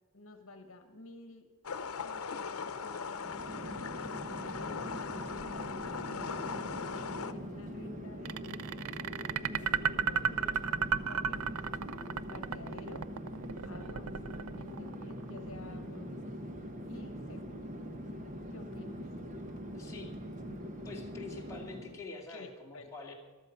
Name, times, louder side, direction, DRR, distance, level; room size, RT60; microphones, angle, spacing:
voice 1, 0.1-1.4 2.0-3.6 4.3-11.6 12.3-13.0 13.6-14.1 14.6-16.3 16.9-17.7 18.5-19.1 22.3-22.9, left 2 dB, 65° left, 7 dB, 1.2 m, -51 dB
sound 1, 1.6-7.3, left 5 dB, 85° left, 0.8 m, -39 dB
Chatter / Fixed-wing aircraft airplane, 3.1-22.0, equal, 35° right, 1.1 m, -43 dB
sound 2, 8.3-15.4, right 7 dB, 85° right, 0.5 m, -33 dB
voice 2, 19.7-20.1 20.4-20.6 20.8-23.1, left 3 dB, 15° left, -3 dB, 2.4 m, -46 dB
14.0 x 12.5 x 5.9 m, 1.3 s
head